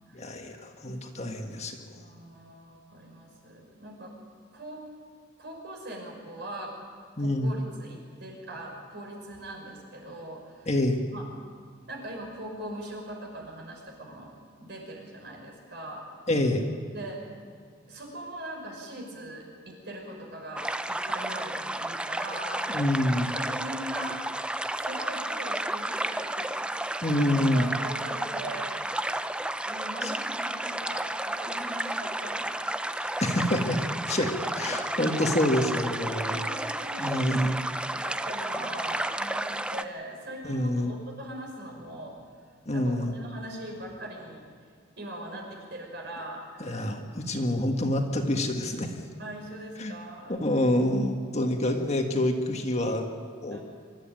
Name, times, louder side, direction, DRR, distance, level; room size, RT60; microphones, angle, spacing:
voice 1, 0.1-1.8 7.2-7.6 10.7-11.0 16.3-16.6 22.7-23.3 27.0-27.7 30.0-30.1 33.0-33.8 34.1-36.4 37.0-37.6 40.4-40.9 42.7-43.1 46.6-48.9 49.8-49.9 50.3-53.1 53.4-53.6, left 1 dB, 35° left, 3 dB, 1.7 m, -27 dB
voice 2, 1.3-1.7 1.9-4.1 4.5-4.8 5.4-6.7 7.2-10.7 11.1-11.3 11.9-14.3 14.6-16.0 16.9-17.2 17.9-22.6 23.2-24.2 24.8-28.7 29.6-32.9 34.4-34.5 34.9-35.2 35.4-35.6 36.2-37.3 37.7-42.1 42.7-44.4 45.0-46.9 49.2-50.9 53.5-53.6, right 1 dB, 60° right, 0 dB, 5.8 m, -41 dB
sound 1, 20.5-39.8, right 1 dB, 5° right, 0.4 m, -32 dB
24.5 x 13.0 x 9.1 m, 2.1 s
head